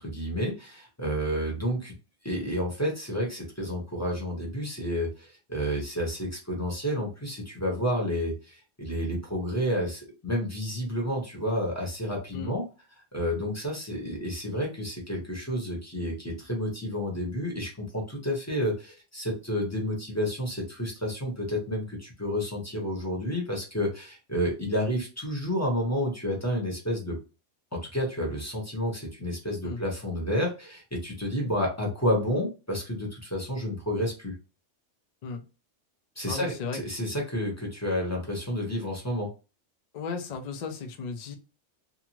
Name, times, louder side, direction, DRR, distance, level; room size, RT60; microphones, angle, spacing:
voice 1, 0.0-1.9 2.2-12.6 13.1-27.2 27.7-34.3 36.2-39.3, equal, 15° left, -1 dB, 0.9 m, -30 dB
voice 2, 36.2-36.8 39.9-41.4, left 5 dB, 65° left, 4 dB, 0.4 m, -35 dB
2.6 x 2.3 x 2.9 m, 0.31 s
omnidirectional pair, 1.2 m